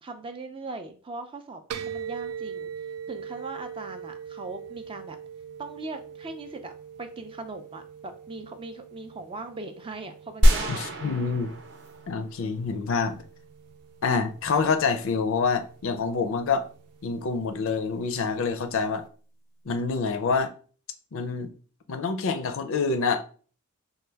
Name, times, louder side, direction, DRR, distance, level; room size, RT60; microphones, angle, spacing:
voice 1, 0.0-2.7 3.1-5.2 5.6-6.7 7.0-10.8, right 3 dB, 25° right, 0.3 m, -39 dB
sound 1, 1.7-19.1, right 7 dB, 90° right, 0.4 m, -43 dB
sound 2, 10.4-12.7, equal, 55° right, 0.7 m, -24 dB
voice 2, 10.7-11.5 12.1-13.2 14.0-16.6 17.0-19.1 19.7-20.5 21.1-21.5 21.9-23.2, left 5 dB, 60° left, 0.4 m, -26 dB
4.3 x 2.2 x 3.3 m
head